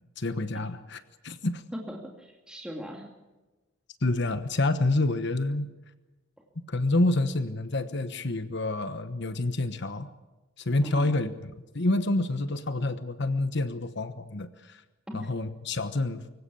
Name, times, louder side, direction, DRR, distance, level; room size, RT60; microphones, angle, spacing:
voice 1, 0.2-1.6 4.0-5.7 6.7-10.1 10.6-11.3 11.7-14.8 15.1-16.2, left 2 dB, 55° left, 11 dB, 1.2 m, -28 dB
voice 2, 1.7-3.1 10.8-11.2 15.1-15.3, equal, 5° right, 0 dB, 2.5 m, -39 dB
25.0 x 16.5 x 8.5 m, 1.1 s
head